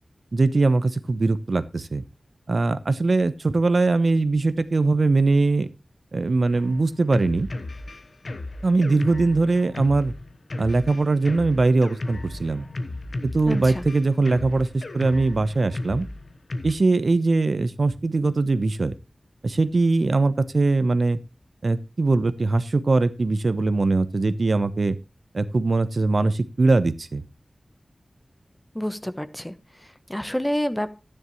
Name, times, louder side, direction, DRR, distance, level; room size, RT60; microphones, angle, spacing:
voice 1, 0.3-2.0 2.5-5.7 6.1-7.5 8.6-10.1 10.6-12.7 13.2-16.1 16.6-18.9 19.4-21.2 21.6-25.0 25.3-27.2, right 3 dB, 55° right, 13 dB, 1.0 m, -21 dB
Drum kit, 6.5-16.7, left 2 dB, 55° left, 1.2 m, -35 dB
voice 2, 13.5-13.8 28.7-30.9, equal, 10° left, 11 dB, 1.0 m, -29 dB
13.0 x 10.0 x 3.1 m, 0.29 s
wide cardioid pair, 90°, 0 cm